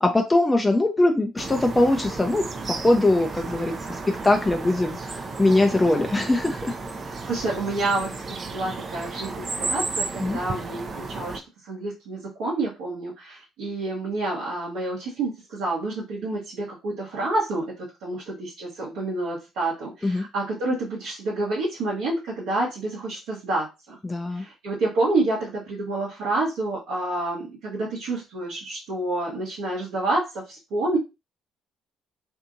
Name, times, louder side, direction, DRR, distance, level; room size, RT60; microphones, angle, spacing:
voice 1, 0.0-6.7 10.2-10.4 20.0-20.3 24.0-24.4, left 2 dB, 20° left, 4 dB, 0.5 m, -22 dB
sound 1, 1.4-11.4, right 3 dB, 40° right, 0.5 m, -33 dB
voice 2, 7.0-8.1 8.4-11.4 11.6-17.7 18.0-24.0 24.3-31.0, right 2 dB, 70° right, -5 dB, 1.0 m, -28 dB
2.7 x 2.6 x 2.5 m, 0.25 s
hypercardioid pair, 50°, 0 cm